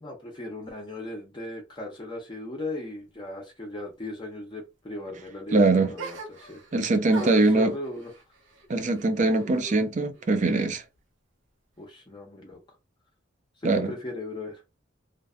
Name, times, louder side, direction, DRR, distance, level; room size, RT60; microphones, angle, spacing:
voice 1, 0.0-6.9 7.2-8.1 11.8-12.6 13.6-14.6, left 2 dB, 25° left, 0.5 m, -38 dB
voice 2, 5.5-5.9 6.7-7.7 8.7-10.8 13.6-13.9, right 2 dB, 40° right, 0.4 m, -22 dB
sound 1, 6.0-6.8 7.1-9.8 10.1-11.0, right 3 dB, 75° right, 0.9 m, -42 dB
2.5 x 2.2 x 2.3 m
head